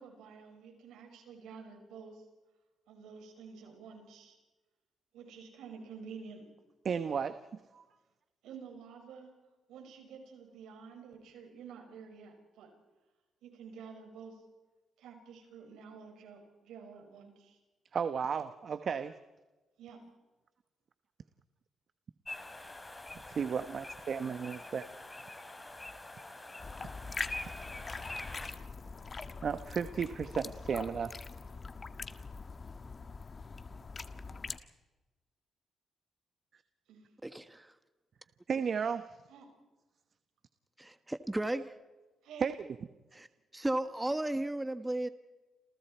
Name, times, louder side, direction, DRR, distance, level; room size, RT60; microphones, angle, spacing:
voice 1, 0.0-2.2 2.9-4.4 5.1-6.5 8.4-9.3 9.7-12.7 13.4-14.4 15.0-17.6 19.8-20.0 36.9-37.1 39.3-39.5 42.2-42.5, right 6 dB, 85° right, 4 dB, 5.9 m, -50 dB
voice 2, 6.8-7.4 7.7-7.8 17.9-19.1 23.3-24.9 29.4-31.1 38.5-39.0 42.4-42.6, right 6 dB, 55° right, 11 dB, 1.1 m, -33 dB
sound 1, 22.3-28.5, left 2 dB, 20° left, 4.4 m, -45 dB
sound 2, 26.6-34.6, left 4 dB, 40° left, 1.7 m, -43 dB
voice 3, 37.2-37.7 40.8-41.7 43.1-43.3 43.5-45.1, right 1 dB, 15° right, 10 dB, 1.4 m, -34 dB
29.5 x 28.0 x 4.5 m, 1.1 s
supercardioid pair, 60°, 0 cm